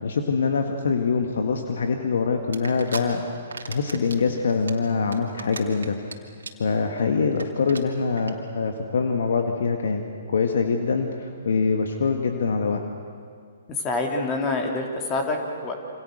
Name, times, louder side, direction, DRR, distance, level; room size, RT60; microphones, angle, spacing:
voice 1, 0.0-3.2 3.7-6.0 6.6-10.0 10.3-12.8, left 5 dB, 65° left, 4 dB, 1.9 m, -24 dB
sound 1, 2.5-3.0 3.4-4.2 4.5-6.1 6.4-6.7 7.0-7.1 7.3-7.4 7.7-7.8 8.2-8.3, right 5 dB, 75° right, 2.8 m, -36 dB
voice 2, 13.8-15.7, left 2 dB, 25° left, 2 dB, 3.1 m, -26 dB
28.0 x 26.5 x 6.6 m, 2.2 s
figure-of-eight pair, 125°, 0 cm